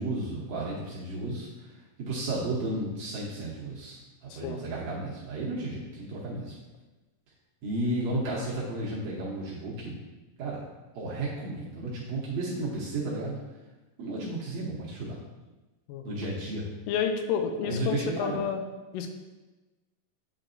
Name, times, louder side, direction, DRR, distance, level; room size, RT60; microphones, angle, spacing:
voice 1, 0.0-1.7 2.0-6.5 7.6-9.9 10.4-10.6 11.0-13.4 14.0-15.2 16.1-16.7 17.6-18.4, right 2 dB, 65° right, -6 dB, 2.0 m, -33 dB
voice 2, 16.9-18.6 18.9-19.1, left 6 dB, 80° left, 5 dB, 2.2 m, -30 dB
9.1 x 3.9 x 2.6 m, 1.2 s
omnidirectional pair, 4.0 m